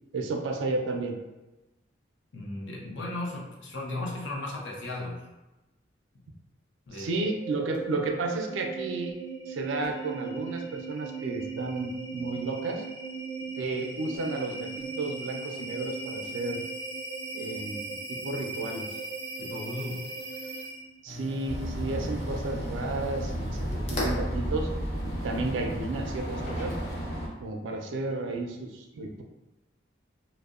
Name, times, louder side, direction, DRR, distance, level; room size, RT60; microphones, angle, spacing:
voice 1, 0.1-1.1 6.9-9.2 9.5-12.8 13.6-16.6 17.3-18.9 21.0-23.5 23.7-24.7 25.2-26.8 27.4-29.2, right 2 dB, 85° right, 3 dB, 0.4 m, -32 dB
voice 2, 2.3-5.2 6.9-7.1 19.4-20.1, left 2 dB, 80° left, -2 dB, 0.6 m, -36 dB
sound 1, 7.1-21.0, right 4 dB, 25° right, 0.4 m, -38 dB
sound 2, 21.1-27.0, left 1 dB, 35° left, 0.4 m, -40 dB
sound 3, 21.5-27.3, equal, 50° left, 0.8 m, -33 dB
2.7 x 2.0 x 2.3 m, 1.0 s
head